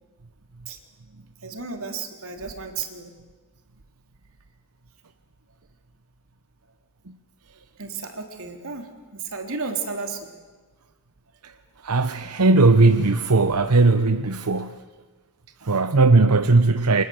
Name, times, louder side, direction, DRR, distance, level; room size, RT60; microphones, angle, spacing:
voice 1, 1.4-3.1 7.8-10.3, right 5 dB, 65° right, 3.4 m, -33 dB
voice 2, 11.8-14.7 15.6-17.0, right 3 dB, 90° right, 1.0 m, -18 dB
29.0 x 24.5 x 7.9 m
head